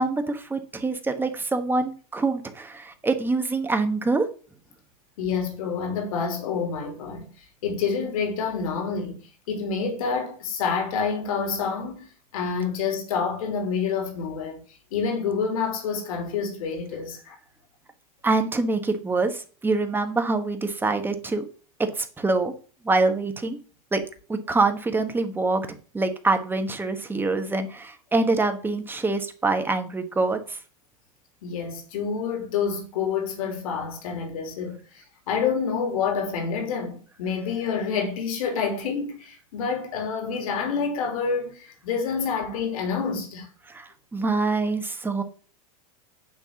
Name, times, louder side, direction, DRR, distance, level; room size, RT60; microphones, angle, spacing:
voice 1, 0.0-4.3 18.2-21.4 21.8-22.5 22.8-23.6 23.9-24.0 24.3-25.7 25.9-30.6 43.7-45.2, right 3 dB, 10° right, 1.3 m, -25 dB
voice 2, 5.2-7.3 7.6-9.2 9.5-12.1 12.3-14.6 14.9-17.3 31.4-43.5, left 5 dB, 75° left, 3.0 m, -28 dB
9.1 x 3.5 x 7.0 m
supercardioid pair, 120°, 18 cm